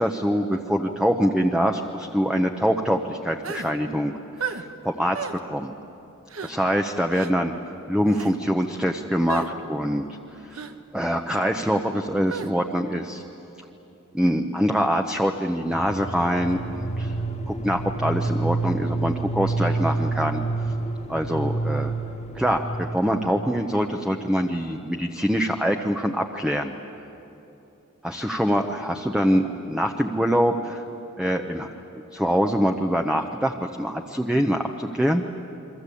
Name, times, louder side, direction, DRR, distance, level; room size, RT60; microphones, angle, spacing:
voice 1, 0.0-5.2 5.4-5.7 6.4-7.5 7.9-10.1 10.4-10.7 10.9-13.2 14.1-17.2 17.5-20.4 21.1-21.9 22.3-26.7 28.0-30.8 31.2-31.7 32.1-35.2, equal, 5° right, 4 dB, 0.9 m, -24 dB
sound 1, 3.4-3.7 4.4-4.6 5.1-5.4 6.3-6.5 7.1-7.3 8.1-8.3 9.3-9.5 10.5-10.7 12.3-12.5, right 6 dB, 80° right, 1.3 m, -33 dB
sound 2, 15.7-23.5, right 2 dB, 35° left, 1.6 m, -28 dB
29.0 x 23.5 x 8.5 m, 3.0 s
head